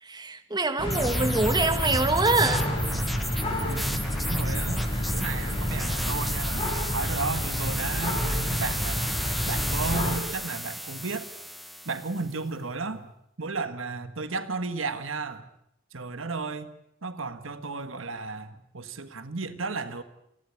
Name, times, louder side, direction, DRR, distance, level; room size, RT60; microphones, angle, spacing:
voice 1, 0.0-2.6, right 2 dB, 20° right, 8 dB, 1.6 m, -25 dB
sound 1, 0.8-10.2, equal, 25° left, 6.1 m, -29 dB
sound 2, 0.9-12.3, equal, ahead, 1.0 m, -35 dB
voice 2, 3.6-4.8 5.1-9.2 9.5-11.3 11.8-13.1 13.4-15.5 15.9-16.7 17.0-20.0, right 3 dB, 75° right, 10 dB, 1.6 m, -33 dB
29.5 x 12.0 x 9.8 m, 0.76 s
head